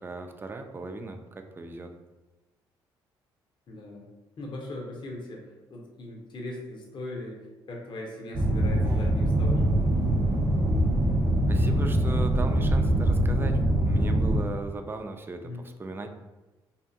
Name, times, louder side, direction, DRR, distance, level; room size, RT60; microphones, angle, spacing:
voice 1, 0.0-1.9 11.5-13.6 13.9-16.1, right 3 dB, 20° right, 6 dB, 0.3 m, -37 dB
voice 2, 3.7-4.0 4.4-5.4 5.7-7.4 7.7-9.7 15.4-15.6, left 1 dB, 50° left, -1 dB, 0.6 m, -39 dB
sound 1, 8.3-14.4, right 1 dB, 80° right, 0.6 m, -23 dB
2.7 x 2.4 x 2.3 m, 1.1 s
supercardioid pair, 55°, 11 cm